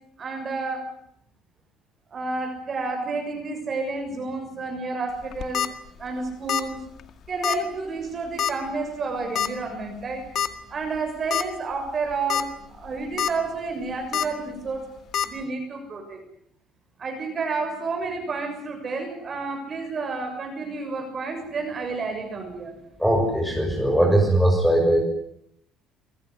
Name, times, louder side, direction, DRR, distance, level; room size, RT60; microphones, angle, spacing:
voice 1, 0.2-0.8 2.1-5.6 6.0-6.8 7.3-10.2 10.7-14.8 15.2-16.2 17.0-22.7, right 3 dB, 35° right, 4 dB, 6.8 m, -30 dB
sound 1, 5.2-5.7 6.5-6.7 7.0-7.1 7.4-7.6 8.4-8.7 9.4-9.5 10.4-10.5 10.9-11.0 11.3-11.4 12.1-12.4 12.8-13.3 14.1-14.3 15.1-15.3, left 9 dB, 50° left, 2.0 m, -25 dB
voice 2, 23.0-25.0, right 1 dB, ahead, 0 dB, 6.6 m, -20 dB
28.5 x 16.0 x 10.0 m, 0.73 s
cardioid pair, 130°, 0 cm